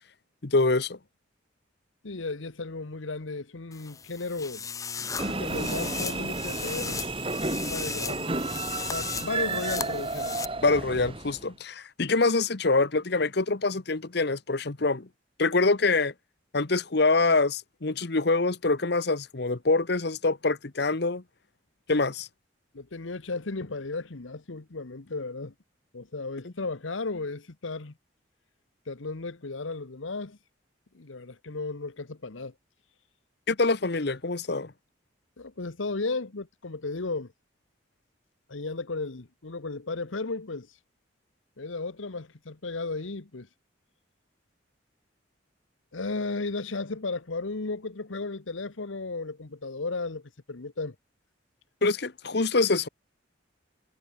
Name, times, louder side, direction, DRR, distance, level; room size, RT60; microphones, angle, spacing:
voice 1, 0.4-1.0 10.6-15.1 15.4-16.1 16.5-21.2 21.9-22.3 33.5-34.7 51.8-52.9, left 3 dB, 55° left, 1.1 m, -25 dB
voice 2, 2.0-4.7 5.0-7.0 7.7-8.3 8.9-10.4 22.7-25.5 25.9-27.9 28.9-30.4 30.9-32.5 35.4-37.3 38.5-40.7 41.6-43.5 45.9-50.9, left 3 dB, 85° left, 1.1 m, -34 dB
sound 1, 3.7-10.5, left 6 dB, 15° left, 0.5 m, -37 dB
sound 2, 5.2-11.5, right 3 dB, 30° right, 2.5 m, -32 dB
head